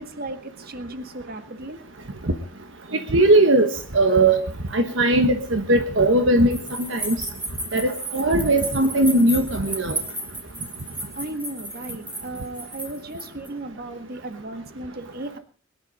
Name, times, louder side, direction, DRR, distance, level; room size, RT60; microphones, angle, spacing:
voice 1, 0.0-1.8 11.2-15.4, right 2 dB, 50° right, 8 dB, 1.8 m, -35 dB
voice 2, 2.9-4.4 4.7-7.2 7.7-10.0, right 2 dB, 65° right, 6 dB, 1.3 m, -19 dB
sound 1, 6.5-13.5, right 1 dB, 10° right, 4.3 m, -34 dB
22.0 x 10.5 x 5.1 m, 0.42 s
head